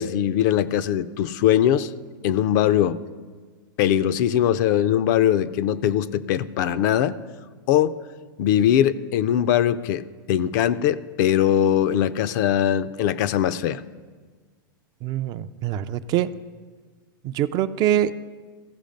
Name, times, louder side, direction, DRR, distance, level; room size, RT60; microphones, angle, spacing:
voice 1, 0.0-1.9 2.2-3.0 3.8-7.2 7.7-7.9 8.4-13.8, left 10 dB, 55° left, 14 dB, 0.4 m, -21 dB
voice 2, 15.0-16.3 17.2-18.1, right 11 dB, 35° right, 13 dB, 0.3 m, -24 dB
15.0 x 5.0 x 5.1 m, 1.5 s
hypercardioid pair, 120°, 12 cm